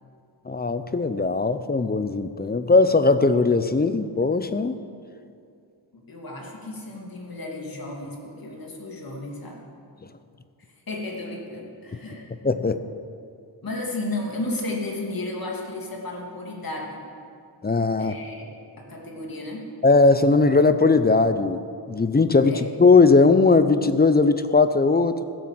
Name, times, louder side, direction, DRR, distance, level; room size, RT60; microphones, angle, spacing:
voice 1, 0.5-4.8 12.4-12.8 17.6-18.2 19.8-21.6 21.9-25.2, left 3 dB, 20° left, 11 dB, 0.6 m, -19 dB
voice 2, 5.9-9.6 10.9-12.2 13.6-17.0 18.0-18.5 18.9-19.7 22.4-22.7, left 2 dB, 50° left, -1 dB, 2.6 m, -33 dB
16.5 x 7.6 x 7.4 m, 2.4 s
wide cardioid pair, 100°, 46 cm